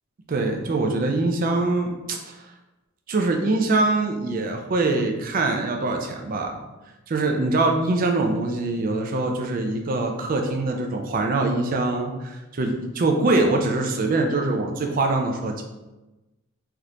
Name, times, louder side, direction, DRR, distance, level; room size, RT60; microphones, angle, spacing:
voice 1, 0.3-2.4 3.1-6.6 7.1-15.6, right 2 dB, 40° right, 3 dB, 0.4 m, -23 dB
3.4 x 2.8 x 2.4 m, 1.1 s
head